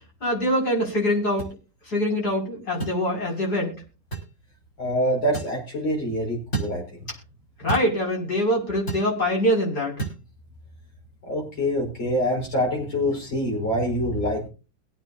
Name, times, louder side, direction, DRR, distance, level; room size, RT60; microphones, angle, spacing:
voice 1, 0.2-1.5 1.9-3.8 7.6-10.0, equal, 55° left, -1 dB, 6.6 m, -24 dB
sound 1, 1.4-1.5 2.8-3.0 4.1-4.3 5.3-5.6 6.5-6.8 7.7-7.9 8.9-9.1 10.0-10.2, right 4 dB, 35° left, 5.7 m, -30 dB
voice 2, 4.8-6.8 11.3-14.5, equal, 85° left, 0 dB, 6.1 m, -25 dB
23.0 x 9.4 x 2.7 m, 0.33 s
omnidirectional pair, 2.1 m